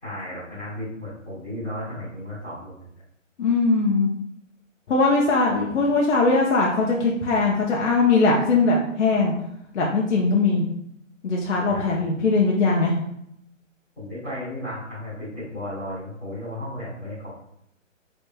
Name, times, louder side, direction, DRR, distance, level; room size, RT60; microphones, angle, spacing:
voice 1, 0.0-2.8 11.6-11.9 13.9-17.3, left 1 dB, 5° left, -19 dB, 1.2 m, -34 dB
voice 2, 3.4-4.1 4.9-9.3 9.7-10.6 11.2-12.9, left 3 dB, 65° left, -2 dB, 0.6 m, -20 dB
3.3 x 3.0 x 2.2 m, 0.76 s
hypercardioid pair, 170°, 39 cm